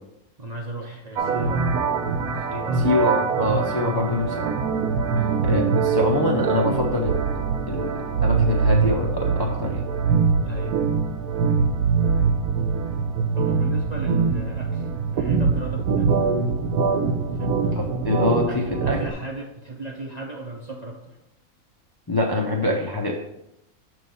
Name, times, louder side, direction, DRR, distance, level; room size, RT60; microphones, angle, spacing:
voice 1, 0.4-1.8 2.4-3.4 5.1-5.4 10.4-10.8 13.3-16.2 17.2-17.9 18.5-21.2, right 2 dB, 40° right, -1 dB, 0.6 m, -36 dB
sound 1, 1.2-19.1, right 5 dB, 90° right, 1.1 m, -23 dB
voice 2, 2.8-4.6 5.4-7.9 8.2-9.8 17.7-19.0 22.1-23.2, left 2 dB, 30° left, -1 dB, 0.4 m, -25 dB
7.2 x 3.1 x 5.4 m, 0.85 s
omnidirectional pair, 1.5 m